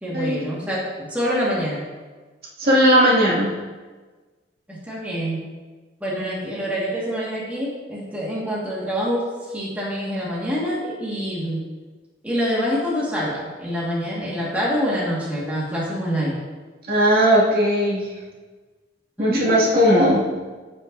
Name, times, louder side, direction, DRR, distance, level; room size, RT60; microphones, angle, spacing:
voice 1, 0.0-1.8 4.7-5.4 6.0-11.6 12.2-16.4 19.2-19.5, equal, 10° right, -6 dB, 1.6 m, -26 dB
voice 2, 2.6-3.5 16.9-18.1 19.2-20.2, equal, 55° right, -6 dB, 2.1 m, -17 dB
14.5 x 5.4 x 2.6 m, 1.3 s
head